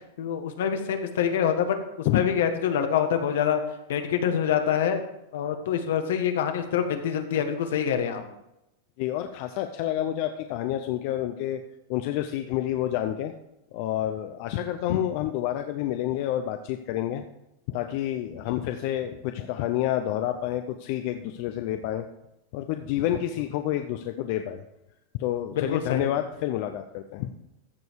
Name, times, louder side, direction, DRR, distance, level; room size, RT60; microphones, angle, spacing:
voice 1, 0.2-3.6 3.9-5.0 5.3-8.2 25.5-26.1, left 8 dB, 75° left, 7 dB, 1.5 m, -26 dB
voice 2, 9.0-11.6 11.9-13.3 13.7-17.2 17.7-22.1 22.5-24.6 25.2-27.3, left 12 dB, 50° left, 7 dB, 0.7 m, -29 dB
14.5 x 5.3 x 4.7 m, 0.88 s
supercardioid pair, 150°, 0 cm